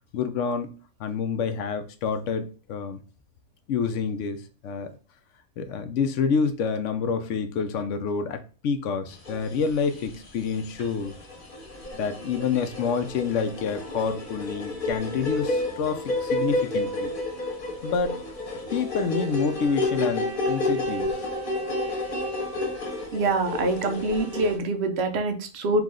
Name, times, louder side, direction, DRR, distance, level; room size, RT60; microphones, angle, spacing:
voice 1, 0.1-3.0 3.7-4.4 4.6-4.9 5.6-11.1 11.9-17.1 17.8-18.2 18.7-21.3, left 5 dB, 70° left, 8 dB, 0.9 m, -28 dB
sound 1, 9.3-10.1 10.4-24.6, left 2 dB, 40° left, 1.1 m, -30 dB
voice 2, 23.1-25.8, right 2 dB, 55° right, 7 dB, 0.9 m, -25 dB
4.7 x 2.4 x 3.7 m, 0.37 s
omnidirectional pair, 1.4 m